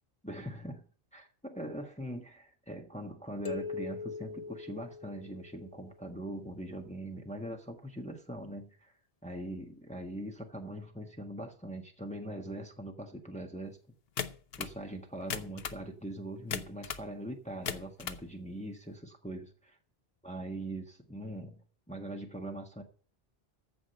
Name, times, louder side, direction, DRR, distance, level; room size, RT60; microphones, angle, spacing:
voice 1, 0.2-0.8 1.1-8.9 9.2-13.8 14.6-19.7 20.2-22.8, right 1 dB, 5° left, 1.5 m, -42 dB
sound 1, 3.4-5.9, left 5 dB, 40° left, 0.7 m, -41 dB
sound 2, 14.2-14.8 15.2-15.8 16.5-17.1 17.5-18.2, left 8 dB, 70° left, 1.0 m, -37 dB
15.0 x 5.1 x 7.8 m
omnidirectional pair, 1.0 m